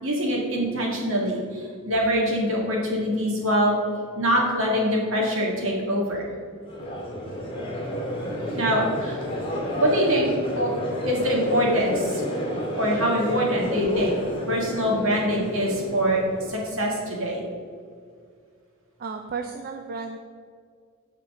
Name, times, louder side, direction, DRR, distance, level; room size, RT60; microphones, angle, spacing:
voice 1, 0.0-3.8 4.2-6.3 8.5-9.2 9.8-10.3 10.5-10.7 11.0-12.2 12.8-14.2 14.5-16.2 16.5-17.5, equal, 65° right, -2 dB, 2.1 m, -24 dB
Crowd, 6.7-16.8, equal, 25° left, 2.1 m, -30 dB
voice 2, 19.0-20.2, right 4 dB, 45° right, 5 dB, 0.4 m, -33 dB
13.5 x 4.6 x 3.7 m, 2.1 s
head